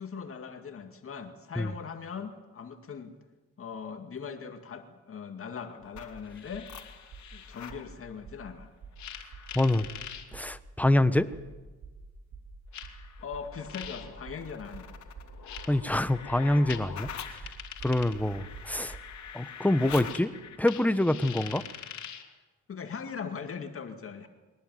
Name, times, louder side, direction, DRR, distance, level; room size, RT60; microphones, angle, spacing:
voice 1, 0.0-3.1 3.6-6.7 7.3-8.7 13.2-15.0 22.7-24.3, left 6 dB, 45° left, 6 dB, 2.2 m, -40 dB
sound 1, 5.8-7.8 9.0-10.2 11.3-11.4 12.7-22.3, left 8 dB, 70° left, 2.9 m, -43 dB
sound 2, 5.9-6.2 6.5-6.8 7.1-7.4 7.7-7.9 8.2-8.5 8.8-9.0 9.3-9.5 9.8-10.0 10.3-10.5 10.8-11.0 11.3-11.5 11.8-12.0 12.3-12.5 12.8-13.0 13.3-13.5 13.8-19.1, right 5 dB, 60° right, 5.5 m, -47 dB
voice 2, 9.5-9.9 10.3-11.3 15.7-17.5 17.8-19.0 19.3-20.3 20.6-21.6, left 1 dB, 5° left, 12 dB, 1.2 m, -26 dB
23.0 x 18.5 x 9.3 m, 1.2 s
cardioid pair, 90°, 30 cm